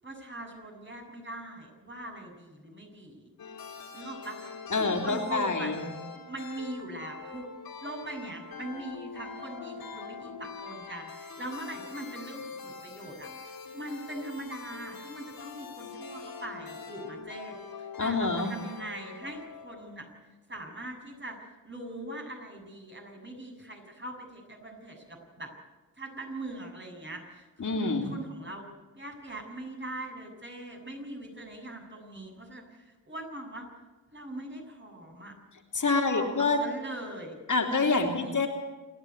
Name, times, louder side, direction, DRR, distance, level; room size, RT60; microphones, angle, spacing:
voice 1, 0.0-3.3 3.9-5.7 6.3-7.4 7.8-20.1 20.5-21.4 21.6-25.5 26.0-33.7 34.1-35.3 35.8-37.4 37.8-38.4, right 1 dB, 35° right, 1 dB, 7.1 m, -41 dB
sound 1, 3.4-20.0, left 5 dB, 90° left, 3.6 m, -44 dB
voice 2, 4.7-5.8 18.0-18.5 27.6-28.1 35.7-36.6 37.5-38.5, left 3 dB, 60° left, 2 dB, 3.3 m, -27 dB
28.0 x 11.0 x 9.6 m, 1.2 s
cardioid pair, 60°, 35 cm